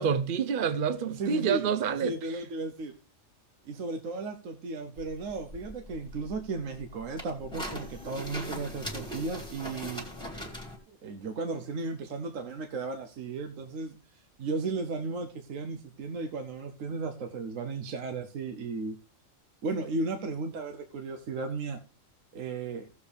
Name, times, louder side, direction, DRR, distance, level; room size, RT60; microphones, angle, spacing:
voice 1, 0.0-2.4, right 7 dB, 50° right, 0.7 m, -28 dB
voice 2, 1.2-1.7 2.0-2.9 3.7-10.0 10.9-14.0 14.4-19.0 19.6-21.8 22.3-22.9, right 3 dB, 70° right, 1.2 m, -35 dB
sound 1, 5.0-10.8, left 1 dB, 5° left, 2.2 m, -40 dB
16.0 x 7.2 x 3.4 m
omnidirectional pair, 1.4 m